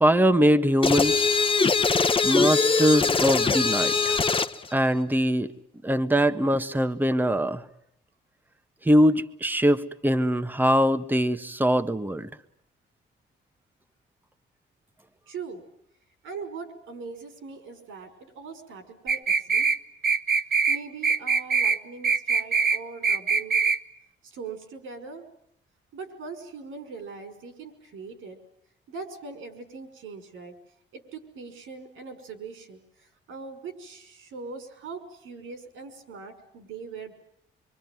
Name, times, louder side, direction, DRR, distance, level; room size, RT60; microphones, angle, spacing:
voice 1, 0.0-1.3 2.2-4.2 4.7-5.5 5.8-7.6 8.8-12.3, equal, 10° right, 9 dB, 1.4 m, -22 dB
sound 1, 0.8-4.6, left 4 dB, 25° left, 1.3 m, -22 dB
voice 2, 15.3-15.6 16.2-19.7 20.7-23.6 24.2-25.3 25.9-28.4 28.9-30.6 30.9-37.1, right 4 dB, 85° right, 8 dB, 5.7 m, -41 dB
sound 2, 19.1-19.8 20.0-20.8 21.0-21.8 22.0-22.8 23.0-23.8, right 5 dB, 50° right, 1.5 m, -22 dB
25.0 x 25.0 x 9.4 m, 0.73 s
cardioid pair, 90°, 20 cm